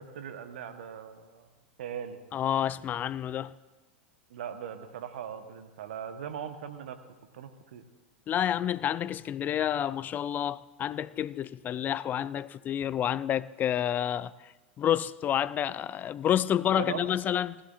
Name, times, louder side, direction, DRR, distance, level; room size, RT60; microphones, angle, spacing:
voice 1, 0.0-1.5 1.8-2.2 4.3-7.0 7.3-7.8 16.7-17.0, right 8 dB, 70° right, 1.2 m, -39 dB
voice 2, 2.3-3.5 8.3-17.6, left 10 dB, 30° left, 0.4 m, -29 dB
19.5 x 15.5 x 2.6 m
hypercardioid pair, 90°, 6 cm